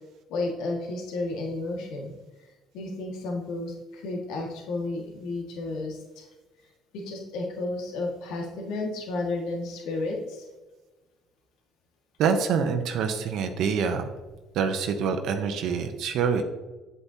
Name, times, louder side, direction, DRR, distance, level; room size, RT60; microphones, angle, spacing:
voice 1, 0.3-2.1 2.7-6.3 6.9-10.4, left 2 dB, 80° left, 0 dB, 1.7 m, -32 dB
voice 2, 12.2-14.1 14.5-16.4, right 6 dB, 70° right, 6 dB, 0.8 m, -26 dB
8.6 x 8.1 x 2.8 m, 1.2 s
cardioid pair, 100°, 0 cm